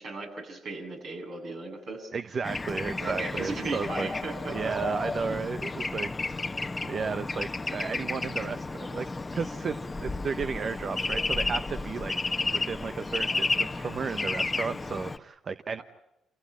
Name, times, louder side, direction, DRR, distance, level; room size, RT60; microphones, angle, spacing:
voice 1, 0.0-2.1 3.0-4.7 5.2-5.4, right 3 dB, 65° right, 1 dB, 7.8 m, -37 dB
voice 2, 2.1-4.1 4.5-6.4 6.9-9.1 9.3-12.1 12.5-15.8, right 5 dB, 50° right, 11 dB, 1.0 m, -33 dB
Bird / Traffic noise roadway noise, 2.4-15.2, left 3 dB, 25° left, 1.1 m, -32 dB
28.5 x 16.0 x 9.7 m, 0.91 s
supercardioid pair, 50°, 0 cm